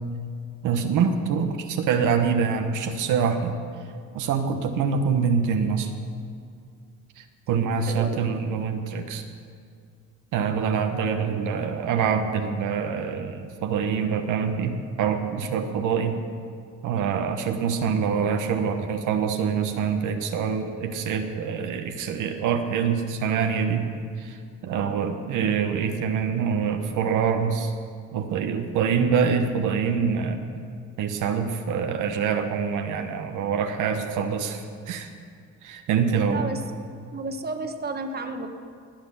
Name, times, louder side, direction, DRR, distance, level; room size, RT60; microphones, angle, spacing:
voice 1, 0.6-3.6 4.1-5.9 7.2-9.2 10.3-16.2 16.8-23.9 24.2-24.4 24.6-27.7 28.1-30.4 31.0-35.1 35.6-36.5, right 6 dB, 90° right, 5 dB, 1.2 m, -25 dB
voice 2, 7.6-8.5 24.7-25.0 36.3-36.8 37.1-38.5, right 3 dB, 30° right, 6 dB, 1.3 m, -33 dB
20.5 x 7.7 x 7.1 m, 2.2 s
cardioid pair, 90°, 30 cm